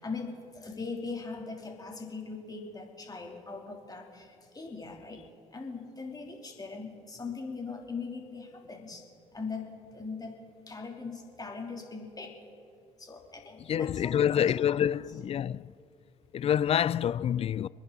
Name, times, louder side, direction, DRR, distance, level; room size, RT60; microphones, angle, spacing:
voice 1, 0.0-5.2 5.5-9.0 9.3-12.4 13.0-14.8, left 4 dB, 25° left, 3.4 m, -40 dB
voice 2, 13.7-15.7 16.3-17.7, left 9 dB, 40° left, 0.4 m, -27 dB
28.0 x 10.5 x 4.1 m
hypercardioid pair, 55°, 15 cm